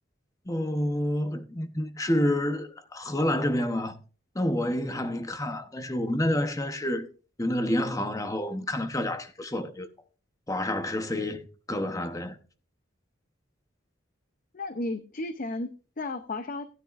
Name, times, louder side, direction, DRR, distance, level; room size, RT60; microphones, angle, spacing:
voice 1, 0.5-4.0 4.3-7.1 7.4-9.9 10.5-12.3, left 1 dB, 15° left, 0.9 m, -28 dB
voice 2, 14.5-16.6, left 2 dB, 45° left, 0.6 m, -34 dB
16.0 x 9.7 x 2.5 m
head